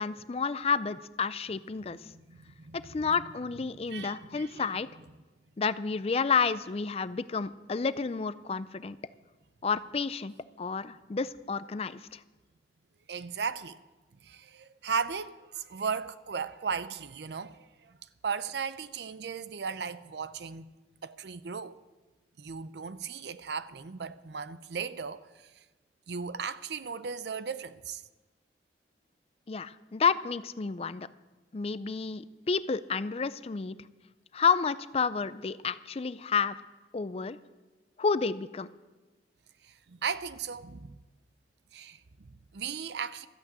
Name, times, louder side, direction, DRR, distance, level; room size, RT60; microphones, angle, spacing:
voice 1, 0.0-2.0 2.8-4.9 5.6-9.0 9.6-12.2 29.5-31.1 31.5-33.8 34.3-36.6 36.9-37.4 38.0-38.7, left 5 dB, 35° left, 0.4 m, -30 dB
voice 2, 2.1-3.1 3.7-4.7 13.1-13.8 14.2-18.0 18.2-20.7 21.0-21.8 22.4-25.5 26.1-28.0 39.6-41.0 41.7-43.3, right 6 dB, 75° right, 0.6 m, -37 dB
13.5 x 8.8 x 8.1 m
head